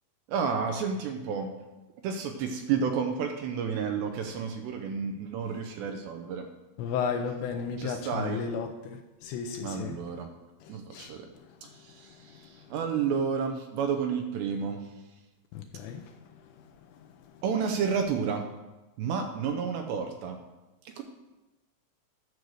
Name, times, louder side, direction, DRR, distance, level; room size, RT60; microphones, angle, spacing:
voice 1, 0.3-1.5 2.0-6.4 7.8-8.5 9.6-10.3 10.7-11.3 11.6-14.9 17.4-18.5 19.0-20.4 20.9-21.0, right 6 dB, 80° right, 5 dB, 2.7 m, -31 dB
voice 2, 6.8-10.0 10.6-11.1 12.3-12.4 15.5-16.1, left 6 dB, 80° left, 6 dB, 2.7 m, -34 dB
10.5 x 6.6 x 6.4 m, 1.1 s
omnidirectional pair, 5.5 m